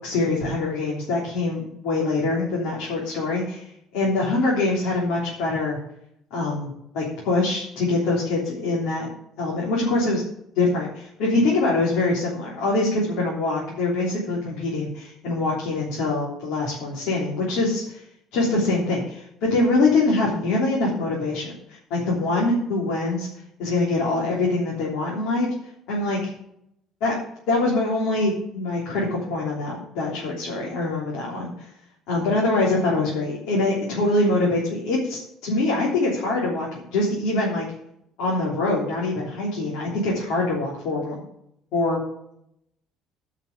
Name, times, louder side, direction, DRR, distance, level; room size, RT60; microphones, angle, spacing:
voice 1, 0.0-5.8 6.3-6.7 6.9-9.1 9.4-10.2 10.5-18.0 18.3-23.3 23.6-25.5 25.9-26.2 27.0-27.1 27.5-31.7 32.1-37.6 38.2-41.2 41.7-42.0, left 2 dB, 70° left, -4 dB, 3.4 m, -24 dB
9.4 x 5.8 x 8.3 m, 0.74 s
cardioid pair, 165°, 0 cm